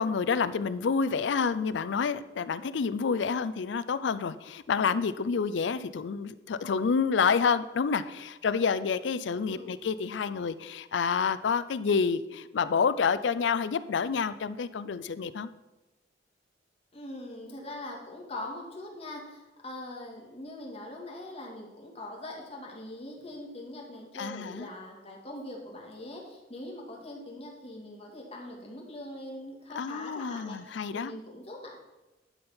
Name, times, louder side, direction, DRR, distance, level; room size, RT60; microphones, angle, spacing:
voice 1, 0.0-15.5 24.1-24.7 29.7-31.1, left 5 dB, 75° left, 15 dB, 0.4 m, -28 dB
voice 2, 16.9-31.8, left 1 dB, 35° left, -1 dB, 1.9 m, -42 dB
11.0 x 4.3 x 5.6 m, 1.1 s
head